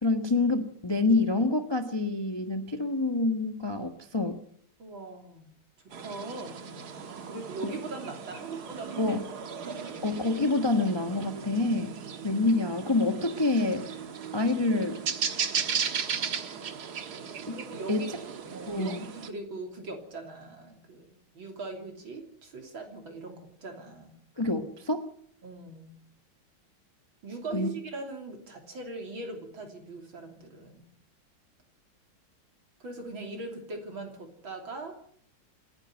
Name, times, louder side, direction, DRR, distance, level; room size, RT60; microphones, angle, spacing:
voice 1, 0.0-4.4 9.0-9.3 10.0-11.9 12.2-14.0 14.3-15.0 17.5-17.6 17.9-18.0 18.7-19.0 24.4-25.1 27.5-27.7, left 2 dB, 15° left, 6 dB, 1.2 m, -27 dB
voice 2, 4.8-5.5 5.8-6.6 7.2-10.0 17.5-24.2 25.4-26.0 27.2-30.9 32.8-35.0, right 3 dB, 70° right, 3 dB, 3.8 m, -41 dB
sound 1, 5.9-19.3, right 6 dB, 50° right, 1.8 m, -36 dB
27.5 x 10.5 x 9.3 m, 0.64 s
omnidirectional pair, 2.3 m